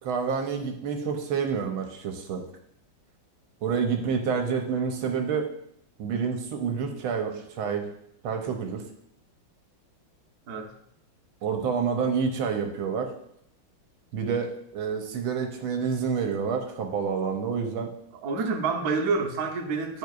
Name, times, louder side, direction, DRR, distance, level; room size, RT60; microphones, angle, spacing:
voice 1, 0.0-2.4 3.6-5.5 6.0-7.9 8.2-8.8 11.4-13.1 14.1-17.9, right 6 dB, 75° right, 4 dB, 1.5 m, -28 dB
voice 2, 18.2-20.0, right 4 dB, 60° right, 2 dB, 1.1 m, -28 dB
10.5 x 4.6 x 2.4 m, 0.74 s
omnidirectional pair, 2.3 m